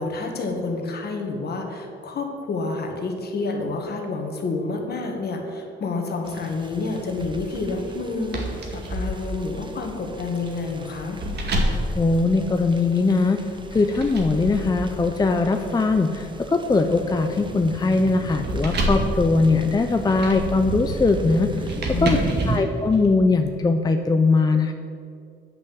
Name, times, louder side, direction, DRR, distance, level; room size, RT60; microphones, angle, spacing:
voice 1, 0.0-11.2 21.9-22.7, left 3 dB, 55° left, 2 dB, 1.8 m, -29 dB
sound 1, 6.2-22.6, right 3 dB, 25° right, 1.0 m, -37 dB
sound 2, 7.2-13.0 13.6-23.1, right 1 dB, 55° right, 2.0 m, -30 dB
voice 2, 12.0-13.4 13.7-21.7 22.0-22.2 22.5-24.7, left 3 dB, 20° left, 5 dB, 0.5 m, -20 dB
9.2 x 5.7 x 7.8 m, 2.4 s
cardioid pair, 90°, 20 cm